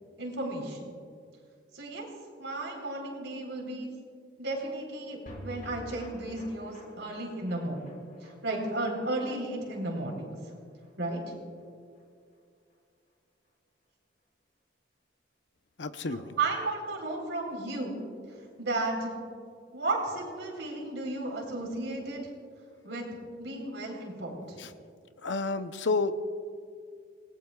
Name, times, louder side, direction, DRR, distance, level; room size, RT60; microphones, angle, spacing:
voice 1, 0.2-0.8 1.7-2.1 2.4-3.9 4.4-7.9 8.2-10.3 11.0-11.3 16.1-18.0 18.6-19.1 19.7-22.3 22.8-23.1 23.4-24.6, right 2 dB, 70° right, 0 dB, 4.0 m, -34 dB
sound 1, 5.3-11.7 12.0-12.1 12.3-12.4, equal, 45° left, 3.6 m, -49 dB
voice 2, 15.8-16.3 24.6-24.7 25.2-26.1, left 3 dB, 70° left, 9 dB, 0.8 m, -30 dB
28.5 x 19.0 x 2.4 m, 2.2 s
head